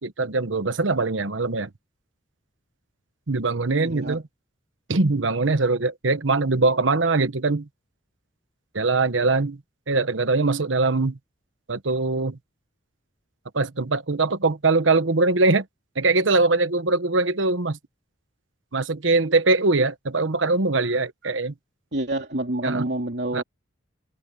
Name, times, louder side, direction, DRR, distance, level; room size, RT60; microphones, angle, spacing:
voice 1, 0.0-1.7 3.3-4.2 4.9-7.7 8.7-9.6 9.9-11.2 11.7-12.4 13.5-15.6 16.0-17.8 18.7-21.5 22.6-22.9 23.3-23.4, right 3 dB, 90° right, 1.1 m, -22 dB
voice 2, 3.8-4.2 21.9-23.4, right 1 dB, 60° right, 3.0 m, -27 dB
head